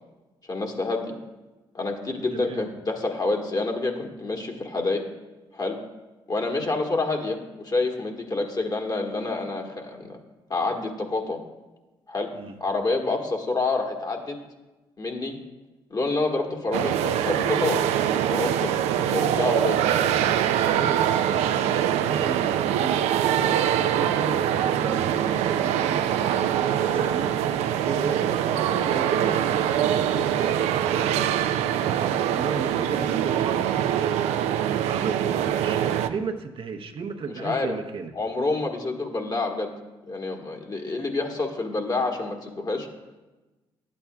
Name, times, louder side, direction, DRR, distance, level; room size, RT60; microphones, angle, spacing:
voice 1, 0.5-1.2 1.7-5.1 5.5-5.8 6.3-10.2 10.5-11.4 12.1-12.3 12.6-14.4 15.0-15.4 15.9-17.8 18.1-18.8 19.1-19.8 37.4-37.7 38.1-39.8 40.1-42.9, left 3 dB, 35° left, 3 dB, 1.4 m, -28 dB
voice 2, 2.3-2.7 12.3-12.5 20.5-27.3 27.8-38.1, right 5 dB, 55° right, 4 dB, 0.8 m, -34 dB
sound 1, 16.7-36.1, right 10 dB, 80° right, 0.4 m, -24 dB
11.5 x 8.5 x 2.3 m, 1.1 s
hypercardioid pair, 50°, 11 cm